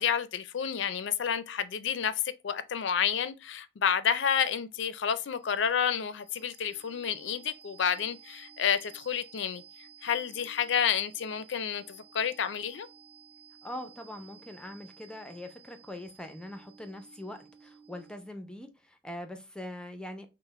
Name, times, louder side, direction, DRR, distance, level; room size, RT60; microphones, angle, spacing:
voice 1, 0.0-9.6 10.0-12.9, left 8 dB, 65° left, 0.4 m, -30 dB
sound 1, 4.5-18.4, right 7 dB, 15° right, 1.0 m, -55 dB
voice 2, 13.6-20.3, left 1 dB, 5° left, 0.5 m, -42 dB
5.6 x 2.1 x 3.1 m
head